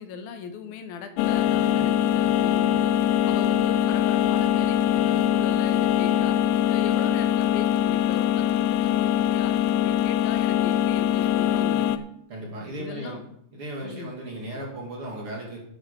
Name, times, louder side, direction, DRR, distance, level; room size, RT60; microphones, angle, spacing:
voice 1, 0.0-2.9 3.3-6.4 6.7-12.1 12.8-13.2 13.8-14.1, left 6 dB, 75° left, 8 dB, 2.4 m, -38 dB
sound 1, 1.2-12.0, left 11 dB, 90° left, 2.8 m, -22 dB
voice 2, 12.3-13.2 13.5-15.6, right 1 dB, 40° right, -2 dB, 2.5 m, -36 dB
10.0 x 8.6 x 5.3 m, 0.70 s
omnidirectional pair, 5.0 m